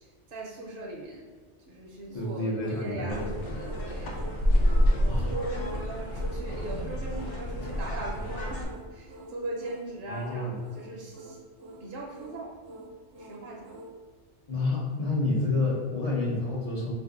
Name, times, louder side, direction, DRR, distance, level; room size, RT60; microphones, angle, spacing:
voice 1, 0.0-1.3 1.7-4.4 4.8-11.4 11.8-12.6 13.2-13.7, right 2 dB, 55° right, -3 dB, 0.7 m, -40 dB
voice 2, 2.1-3.3 5.0-5.3 10.1-10.6 14.5-16.9, left 2 dB, 40° left, -6 dB, 0.6 m, -29 dB
sound 1, 2.1-14.0, right 1 dB, 90° right, 0.9 m, -46 dB
sound 2, 3.1-8.7, equal, 80° left, 0.9 m, -28 dB
2.6 x 2.5 x 3.7 m, 1.5 s
omnidirectional pair, 1.2 m